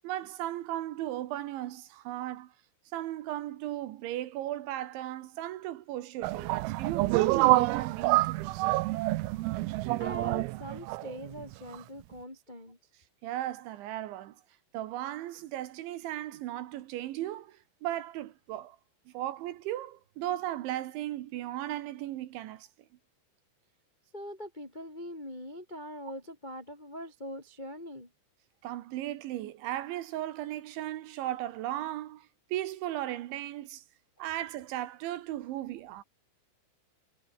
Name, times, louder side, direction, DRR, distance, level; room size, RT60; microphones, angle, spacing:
voice 1, 0.0-2.5 2.9-8.5 13.2-14.4 14.7-18.8 19.1-22.7 28.6-33.8 34.2-36.0, right 14 dB, 70° right, 3.3 m, -36 dB
sound 1, 6.2-11.8, right 20 dB, 90° right, 3.6 m, -27 dB
voice 2, 10.0-12.8 24.1-28.1, equal, 25° left, 1.0 m, -42 dB
omnidirectional pair, 6.0 m